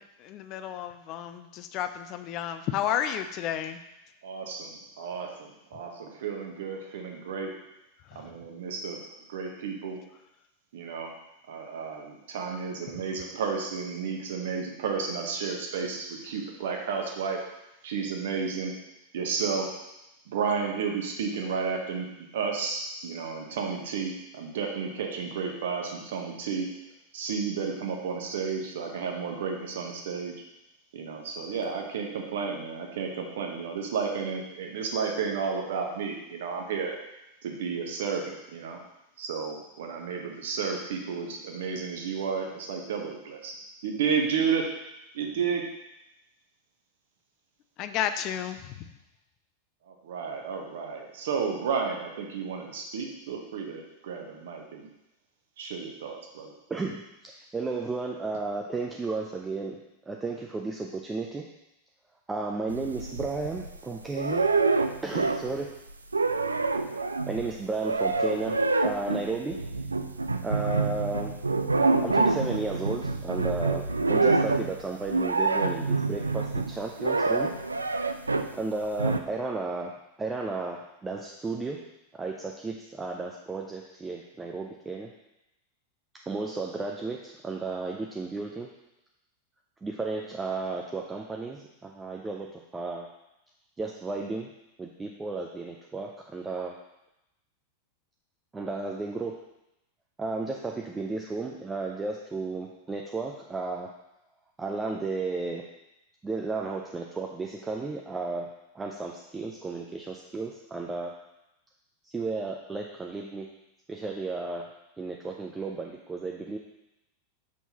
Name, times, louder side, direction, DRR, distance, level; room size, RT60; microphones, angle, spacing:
voice 1, 0.0-3.8 8.1-8.3 47.8-48.9, left 10 dB, 40° left, 10 dB, 0.4 m, -32 dB
voice 2, 4.2-4.7 5.0-7.5 8.1-9.0 9.3-10.0 10.7-11.1 11.5-17.4 17.8-18.7 19.1-19.7 20.3-22.1 22.3-26.7 27.1-30.3 30.9-36.9 37.4-38.8 39.2-43.5 43.8-44.6 45.1-45.6 49.9-54.9 55.6-56.5, right 6 dB, 55° right, 2 dB, 1.0 m, -32 dB
voice 3, 56.7-59.8 60.1-61.4 62.3-64.4 65.0-65.7 67.3-69.6 70.4-71.3 72.0-77.5 78.5-79.9 80.2-81.8 82.1-85.1 86.3-88.7 89.8-93.1 93.8-94.5 94.8-96.8 98.5-99.4 100.2-103.9 104.6-105.6 106.2-108.5 108.7-111.1 112.0-113.5 113.9-114.6 115.0-116.6, right 3 dB, 15° right, 0 dB, 0.5 m, -33 dB
sound 1, 62.7-63.8 64.1-65.6 65.9-78.6 79.0-79.2, right 3 dB, 80° right, 0.3 m, -27 dB
6.2 x 5.3 x 2.9 m, 0.90 s
figure-of-eight pair, 90°, 0 cm